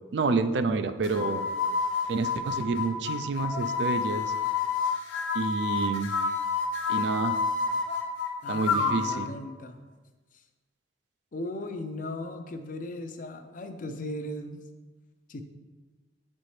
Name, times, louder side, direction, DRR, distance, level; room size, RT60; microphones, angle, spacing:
voice 1, 0.1-1.4 2.1-4.3 5.3-6.1 6.9-7.4 8.5-9.3, right 4 dB, 60° right, 10 dB, 0.3 m, -28 dB
sound 1, 1.0-9.2, left 5 dB, 85° left, 0.8 m, -29 dB
voice 2, 8.4-9.8 10.3-10.4 11.3-14.6 15.3-15.4, left 1 dB, 45° left, 7 dB, 0.5 m, -37 dB
8.0 x 4.3 x 3.2 m, 1.3 s
head